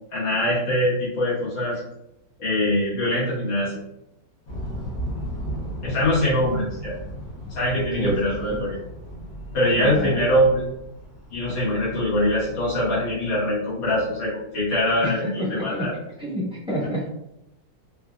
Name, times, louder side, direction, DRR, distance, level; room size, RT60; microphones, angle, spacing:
voice 1, 0.1-1.8 2.4-3.8 5.8-6.9 7.5-8.8 9.5-10.6 11.3-15.9, left 1 dB, 90° left, -9 dB, 2.4 m, -23 dB
sound 1, 4.5-12.5, equal, 60° left, 1.2 m, -35 dB
voice 2, 8.0-8.6 9.8-10.2 15.0-15.9 16.2-17.1, equal, 5° right, -8 dB, 0.7 m, -29 dB
4.3 x 2.5 x 2.3 m, 0.85 s
omnidirectional pair, 2.0 m